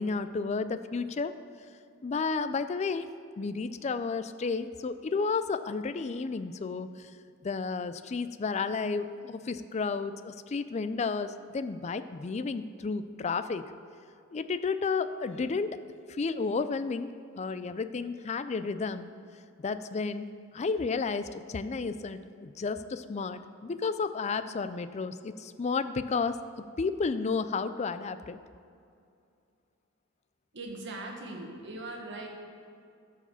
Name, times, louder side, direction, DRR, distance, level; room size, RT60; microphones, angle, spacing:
voice 1, 0.0-1.3 2.0-3.1 3.4-7.1 7.4-13.6 14.3-15.8 16.1-19.1 19.6-26.4 26.8-28.4, left 4 dB, 35° left, 12 dB, 0.4 m, -32 dB
voice 2, 30.5-32.3, right 2 dB, 60° right, 1 dB, 1.6 m, -40 dB
13.0 x 4.9 x 7.0 m, 2.4 s
head